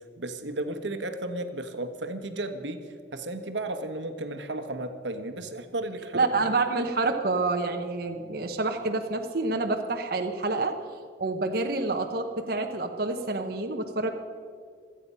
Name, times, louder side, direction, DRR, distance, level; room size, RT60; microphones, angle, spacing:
voice 1, 0.2-2.8 3.1-6.3, right 2 dB, 85° right, 7 dB, 1.3 m, -34 dB
voice 2, 6.1-10.8 11.2-14.1, right 3 dB, 55° right, 3 dB, 1.0 m, -28 dB
26.5 x 8.8 x 5.6 m, 2.2 s
head